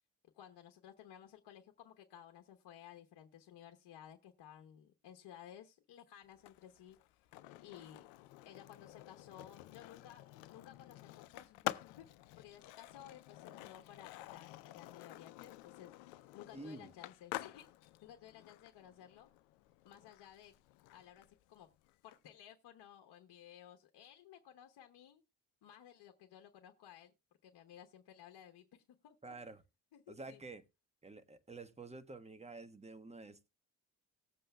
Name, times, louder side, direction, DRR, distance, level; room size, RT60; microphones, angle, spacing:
voice 1, 0.3-7.2 7.6-8.1 8.4-10.2 10.5-12.1 12.3-17.7 18.0-19.3 19.8-20.5 20.9-21.7 22.0-25.2 25.6-27.1 27.4-29.4 29.9-30.4, left 10 dB, 55° left, 1.1 m, -56 dB
Skateboard, 6.3-22.2, left 16 dB, 75° left, 0.6 m, -49 dB
voice 2, 16.5-16.9 29.2-29.6 30.1-30.6 31.0-33.5, right 3 dB, 15° right, 1.2 m, -49 dB
19.0 x 7.7 x 2.2 m
hypercardioid pair, 50°, 47 cm